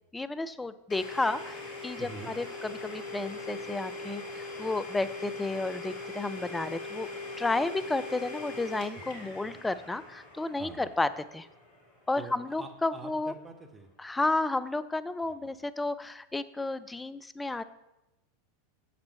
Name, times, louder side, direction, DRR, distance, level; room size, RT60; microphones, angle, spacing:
voice 1, 0.1-7.1 7.4-11.5 12.1-13.3 14.0-17.6, left 2 dB, 10° left, 13 dB, 0.4 m, -32 dB
Domestic sounds home sounds, 0.9-12.5, left 3 dB, 40° left, 3.0 m, -41 dB
voice 2, 2.0-2.3 10.6-10.8 12.2-13.9 15.4-15.5, right 3 dB, 15° right, 4 dB, 1.2 m, -45 dB
7.5 x 7.2 x 4.4 m, 0.93 s
figure-of-eight pair, 85°, 0 cm